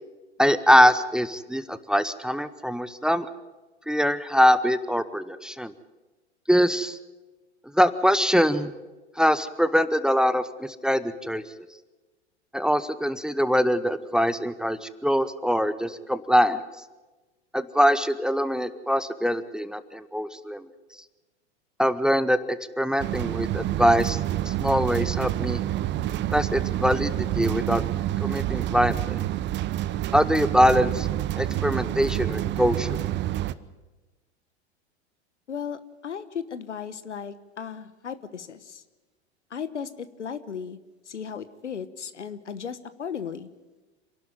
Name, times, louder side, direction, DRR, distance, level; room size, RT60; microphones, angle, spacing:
voice 1, 0.4-3.3 3.9-5.7 6.5-7.0 7.7-8.7 9.2-11.4 12.5-16.6 17.5-20.7 21.8-24.2 24.4-25.6 26.3-27.8 28.2-29.2 30.1-31.1 31.4-33.0, equal, ahead, 14 dB, 0.9 m, -23 dB
sound 1, 23.0-33.5, right 13 dB, 35° right, 0.8 m, -28 dB
voice 2, 35.5-38.8 39.5-40.8 41.0-43.5, left 7 dB, 90° left, 14 dB, 1.2 m, -36 dB
26.5 x 12.0 x 9.2 m, 1.2 s
hypercardioid pair, 95°, 34 cm